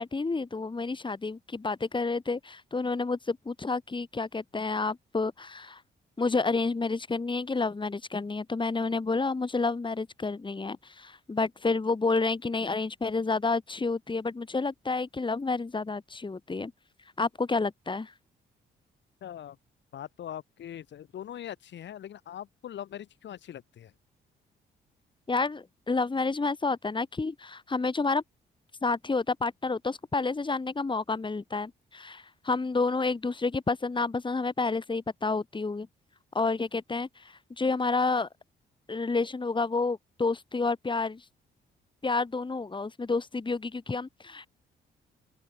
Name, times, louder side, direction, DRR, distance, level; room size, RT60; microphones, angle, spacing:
voice 1, 0.0-5.8 6.2-16.7 17.2-18.1 25.3-28.2 28.8-35.9 36.3-38.3 38.9-41.2 42.0-44.5, left 3 dB, 25° left, 2.6 m, -29 dB
voice 2, 19.2-19.6 19.9-23.9, left 10 dB, 70° left, 2.8 m, -41 dB
open air
cardioid pair, 75°, 19 cm